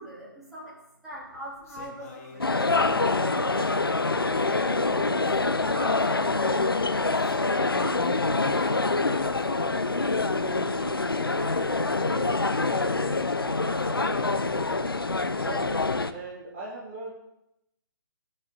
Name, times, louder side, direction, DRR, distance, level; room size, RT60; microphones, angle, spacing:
voice 1, 0.0-3.9 4.5-5.3 5.6-7.0 7.6-14.1, right 1 dB, ahead, -10 dB, 3.7 m, -43 dB
sound 1, 1.1-14.6, left 4 dB, 40° left, 1.7 m, -46 dB
sound 2, 2.4-16.1, left 3 dB, 80° left, 0.7 m, -25 dB
voice 2, 15.3-17.1, right 3 dB, 35° right, -5 dB, 2.5 m, -39 dB
16.5 x 5.6 x 4.2 m, 0.83 s
figure-of-eight pair, 135°, 12 cm